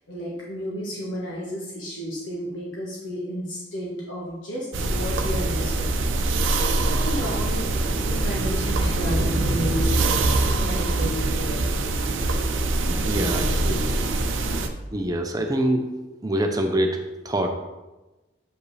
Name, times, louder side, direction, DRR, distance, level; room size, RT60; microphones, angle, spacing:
voice 1, 0.1-7.7 8.0-10.2 10.5-11.9 12.5-13.9, equal, 75° left, -5 dB, 1.5 m, -33 dB
sound 1, 4.7-14.7, right 2 dB, 75° right, 0.6 m, -23 dB
voice 2, 12.9-13.8 14.9-15.9 16.2-17.5, right 1 dB, 20° right, 4 dB, 0.6 m, -25 dB
8.0 x 5.1 x 3.3 m, 1.1 s
head